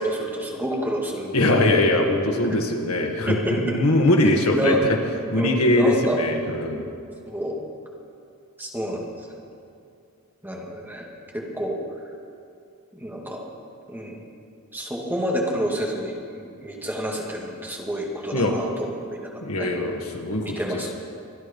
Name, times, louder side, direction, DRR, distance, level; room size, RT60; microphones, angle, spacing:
voice 1, 0.0-1.4 3.3-3.8 4.5-4.9 5.4-6.2 7.3-7.5 8.6-9.0 10.4-11.1 11.3-11.8 12.9-13.4 13.9-14.2 14.7-19.3 19.6-19.7 20.4-20.9, equal, 10° right, -2 dB, 2.2 m, -28 dB
voice 2, 1.3-5.0 5.3-6.8 18.3-18.6 19.4-20.8, left 1 dB, 75° left, 2 dB, 1.9 m, -21 dB
25.0 x 10.0 x 5.4 m, 2.4 s
head